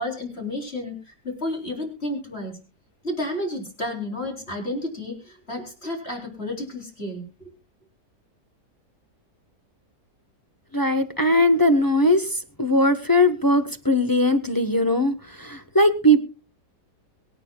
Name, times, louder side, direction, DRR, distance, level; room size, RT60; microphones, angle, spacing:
voice 1, 0.0-2.6 3.0-7.5, left 1 dB, 35° left, 1 dB, 4.2 m, -31 dB
voice 2, 10.7-16.2, left 1 dB, 15° left, 8 dB, 1.0 m, -20 dB
23.5 x 9.1 x 2.3 m, 0.32 s
omnidirectional pair, 1.8 m